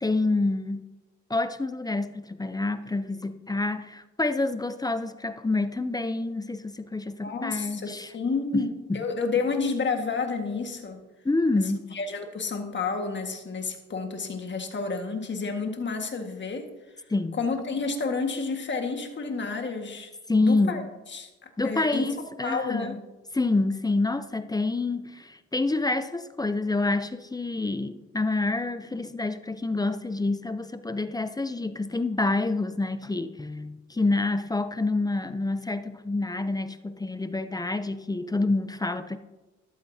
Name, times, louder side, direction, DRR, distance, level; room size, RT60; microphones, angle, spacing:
voice 1, 0.0-0.9 1.3-8.1 8.5-9.0 11.2-11.9 17.1-17.4 20.3-20.9 21.6-22.9 23.3-39.2, left 2 dB, 15° left, 0.5 m, -27 dB
voice 2, 7.2-11.0 11.9-16.7 17.4-20.1 20.4-20.8 21.1-21.3 21.6-22.1 22.4-23.0, left 4 dB, 40° left, 1.7 m, -30 dB
13.5 x 12.0 x 2.8 m
cardioid pair, 90°, 30 cm